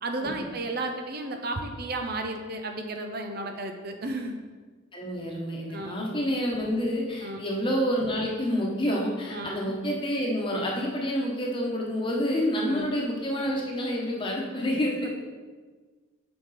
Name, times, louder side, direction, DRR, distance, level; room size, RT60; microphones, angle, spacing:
voice 1, 0.0-4.4 5.7-6.2 7.2-7.4 9.3-9.6 12.7-13.0 15.0-15.1, right 2 dB, 45° right, 5 dB, 0.6 m, -33 dB
voice 2, 4.9-15.1, equal, 25° left, -2 dB, 1.1 m, -28 dB
7.6 x 5.2 x 4.2 m, 1.5 s
head